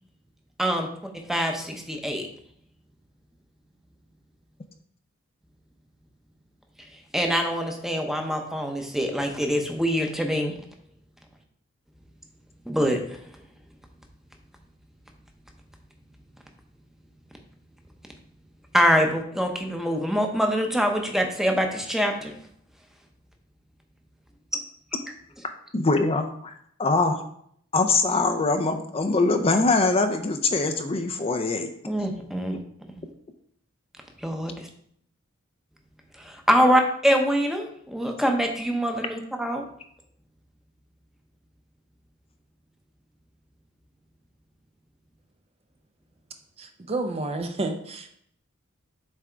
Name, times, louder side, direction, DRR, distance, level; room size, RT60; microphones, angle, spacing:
voice 1, 1.3-2.3 7.1-10.6 12.7-13.2 18.7-22.3 31.9-32.6 32.9-33.0 34.2-34.5 36.2-39.7, equal, ahead, 3 dB, 0.8 m, -24 dB
voice 2, 25.7-27.2 27.7-31.7 36.6-36.7, left 3 dB, 30° left, 6 dB, 0.5 m, -23 dB
voice 3, 46.6-48.1, right 2 dB, 30° right, 5 dB, 0.5 m, -30 dB
7.5 x 3.6 x 4.4 m, 0.67 s
head